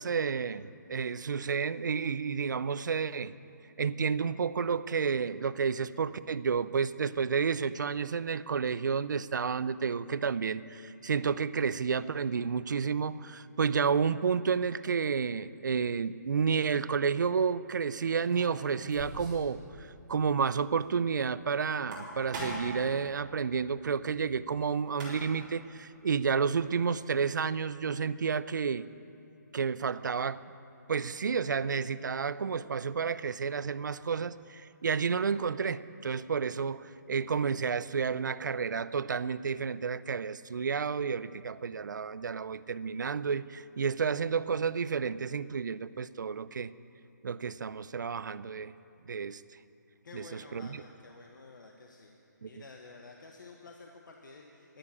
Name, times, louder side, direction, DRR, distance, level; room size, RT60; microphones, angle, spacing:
voice 1, 0.0-3.3 3.8-28.9 29.5-30.4 30.9-46.7 47.2-48.7 49.1-49.4 50.1-50.8 52.4-52.5, right 6 dB, 75° right, 17 dB, 0.5 m, -31 dB
sound 1, 16.2-16.6 18.1-19.5 19.8-19.9 20.2-20.3 21.7-22.8 24.6-24.7 24.9-25.5, right 1 dB, 25° right, 4.4 m, -41 dB
voice 2, 50.0-52.2 52.4-54.8, left 3 dB, 85° left, 1 dB, 1.4 m, -51 dB
12.0 x 11.5 x 8.5 m, 2.8 s
hypercardioid pair, 170°, 10 cm